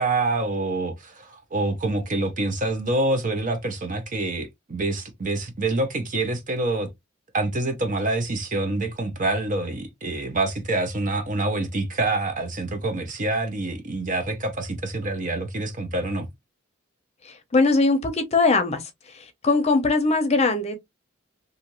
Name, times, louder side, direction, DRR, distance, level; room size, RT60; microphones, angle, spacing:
voice 1, 0.0-6.9 7.3-16.3, right 2 dB, 40° right, 0.7 m, -26 dB
voice 2, 17.5-18.8 19.4-20.8, left 3 dB, 35° left, 0.6 m, -20 dB
2.6 x 2.5 x 2.9 m
head